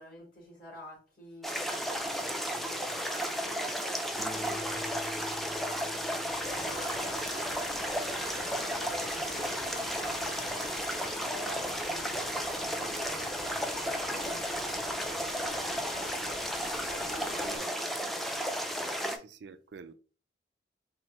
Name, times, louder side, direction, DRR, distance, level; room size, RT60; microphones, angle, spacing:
voice 1, 0.0-17.9 18.9-19.2, equal, 50° left, 2.1 m, -49 dB
sound 1, 1.4-19.2, equal, ahead, 0.4 m, -34 dB
Acoustic guitar, 4.2-8.0, left 1 dB, 15° left, 0.8 m, -44 dB
sound 2, 6.3-17.6, left 1 dB, 65° left, 1.4 m, -44 dB
voice 2, 17.3-17.7 19.2-19.9, right 5 dB, 70° right, 0.4 m, -48 dB
4.3 x 2.6 x 2.9 m
head